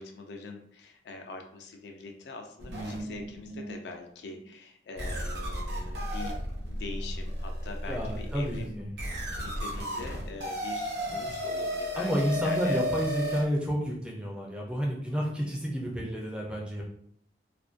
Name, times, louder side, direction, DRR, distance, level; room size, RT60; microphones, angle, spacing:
voice 1, 0.0-6.4 6.7-8.8 9.2-12.8, left 3 dB, 70° left, 4 dB, 0.3 m, -43 dB
sound 1, 2.6-3.8 4.3-4.4 5.0-13.4, equal, 70° right, 0.7 m, -34 dB
voice 2, 7.9-8.9 11.9-16.8, equal, 5° right, -2 dB, 0.4 m, -30 dB
2.4 x 2.1 x 2.4 m, 0.67 s
head